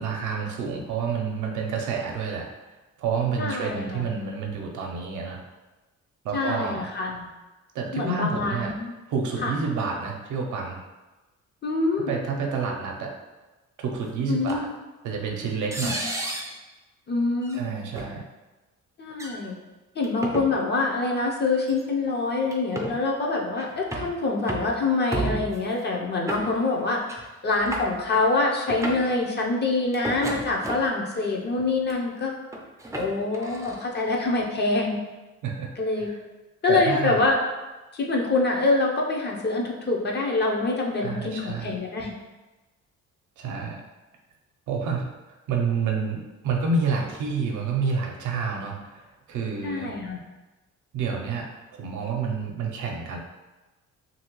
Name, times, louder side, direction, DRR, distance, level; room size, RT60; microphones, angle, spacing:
voice 1, 0.0-2.5 3.0-5.4 6.2-6.9 7.7-8.7 9.1-10.8 12.1-13.1 13.8-14.7 15.0-16.0 17.5-18.2 35.4-35.7 36.0-36.2 36.7-37.3 41.0-41.7 43.4-43.8 44.7-45.0 45.5-49.9 50.9-53.2, right 5 dB, 80° right, 1 dB, 0.6 m, -29 dB
voice 2, 3.4-4.0 6.3-7.3 7.9-8.9 9.4-9.5 11.6-12.1 14.3-14.7 15.8-16.0 17.1-17.6 19.0-19.5 20.0-32.3 32.9-35.0 35.8-36.1 36.6-37.4 37.9-42.1 49.6-50.2, left 3 dB, 35° left, -1 dB, 0.6 m, -25 dB
sound 1, 14.5-14.6 15.7-16.6 17.4-17.6 18.0-18.1 19.1-19.4 20.0-20.5 21.7-21.8 22.5-23.0 23.6-24.1 24.5-24.8 25.1-25.6 26.3-26.8 27.1-27.2 27.5-28.2 28.6-29.1 29.9-31.0 31.6-31.9 32.5-33.8, right 1 dB, 10° right, 0.5 m, -32 dB
2.8 x 2.7 x 3.0 m, 1.1 s
cardioid pair, 90°, 30 cm